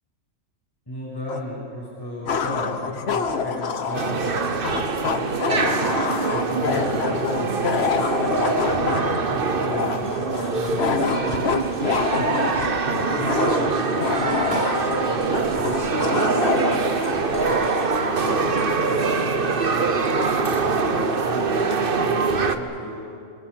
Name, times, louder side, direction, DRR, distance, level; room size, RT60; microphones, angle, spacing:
voice 1, 0.9-8.0 8.4-17.0 17.3-23.1, left 1 dB, 15° left, -6 dB, 6.3 m, -35 dB
sound 1, 1.3-1.4 2.3-17.6, left 5 dB, 50° left, 1.2 m, -27 dB
sound 2, 3.9-22.6, right 4 dB, 45° right, 1.2 m, -24 dB
sound 3, 10.0-19.8, left 2 dB, 35° left, 2.5 m, -41 dB
25.5 x 25.0 x 6.4 m, 2.6 s
omnidirectional pair, 1.4 m